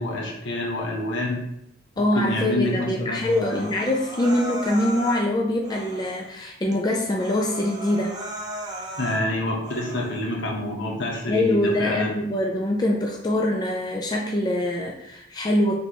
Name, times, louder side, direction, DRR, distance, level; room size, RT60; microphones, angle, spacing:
voice 1, 0.0-1.4 2.0-3.7 9.0-12.3, left 1 dB, 65° left, -1 dB, 0.9 m, -28 dB
voice 2, 2.0-8.1 11.3-15.8, left 1 dB, 20° left, -1 dB, 0.4 m, -24 dB
Human voice, 3.2-5.2 5.6-6.3 6.7-6.8 7.1-9.2 9.6-10.2, equal, 20° right, 0.6 m, -36 dB
4.1 x 3.3 x 2.9 m, 0.80 s
head